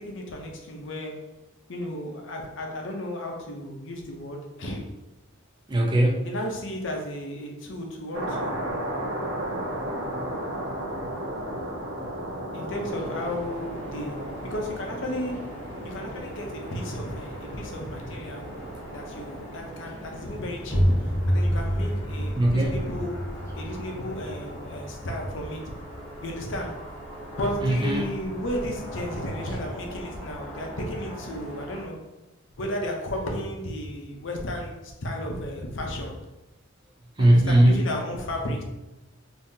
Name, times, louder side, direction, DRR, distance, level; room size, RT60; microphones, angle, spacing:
voice 1, 0.0-1.3 1.7-4.9 6.2-8.7 12.5-18.5 18.9-25.8 26.2-26.9 27.4-32.0 32.6-36.2 37.2-38.6, left 1 dB, 65° left, 1 dB, 0.6 m, -34 dB
voice 2, 5.7-6.2 22.4-22.8 27.6-28.0 37.2-37.8, right 1 dB, 20° right, 1 dB, 0.4 m, -19 dB
sound 1, 8.1-24.7, right 1 dB, 55° right, 0.7 m, -36 dB
sound 2, 12.9-31.8, equal, 10° left, 0.8 m, -42 dB
sound 3, 20.6-26.2, equal, 5° right, 1.3 m, -28 dB
3.6 x 2.7 x 2.7 m, 1.0 s
head